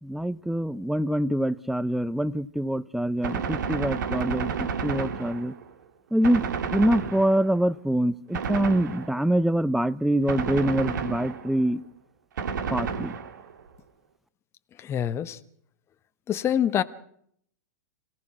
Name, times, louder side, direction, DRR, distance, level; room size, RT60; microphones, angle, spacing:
voice 1, 0.0-4.5 4.8-5.5 6.1-6.5 6.7-11.8 12.7-13.1, right 1 dB, ahead, 0.7 m, -25 dB
Gunshot gunfire, 3.2-5.7 6.2-7.6 8.3-9.4 10.3-11.7 12.4-13.6, right 6 dB, 75° right, 2.4 m, -31 dB
voice 2, 14.8-15.4 16.3-16.8, left 9 dB, 25° left, 1.2 m, -25 dB
26.0 x 17.0 x 6.1 m
hypercardioid pair, 115°, 10 cm